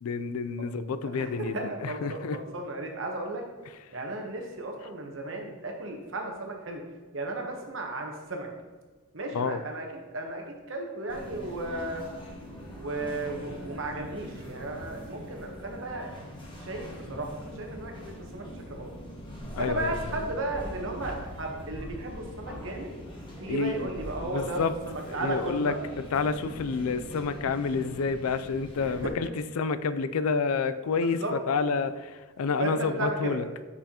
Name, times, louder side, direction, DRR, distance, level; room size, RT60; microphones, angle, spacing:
voice 1, 0.0-2.4 9.3-9.6 19.6-20.1 23.5-23.9 24.2-24.7 25.1-25.7 26.1-33.5, left 5 dB, 80° left, 13 dB, 0.4 m, -29 dB
voice 2, 1.0-3.4 3.9-6.8 7.1-8.5 9.1-9.9 10.1-12.0 12.8-16.1 16.6-17.9 18.3-18.9 19.6-22.9 23.4-24.6 24.9-25.7 28.8-29.1 31.0-31.3 32.6-33.4, right 2 dB, 60° right, 1 dB, 1.0 m, -34 dB
sound 1, 11.1-29.1, equal, 20° left, 1.2 m, -42 dB
6.9 x 5.6 x 2.9 m, 1.4 s
head